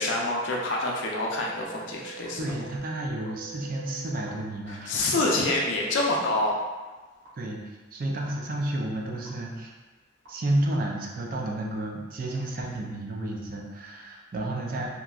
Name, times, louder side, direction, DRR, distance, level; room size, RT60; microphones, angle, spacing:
voice 1, 0.0-2.4 4.7-6.6, left 2 dB, 85° left, -2 dB, 0.5 m, -26 dB
sound 1, 0.9-4.3 5.2-5.3 6.2-6.3 7.2-7.3 8.2-8.3 9.2-9.3 10.2-10.3, right 10 dB, 70° right, 0.9 m, -46 dB
voice 2, 2.4-5.2 7.4-7.6 7.9-9.7 10.3-14.9, right 1 dB, 50° right, -1 dB, 0.4 m, -31 dB
2.9 x 2.4 x 2.3 m, 1.3 s
head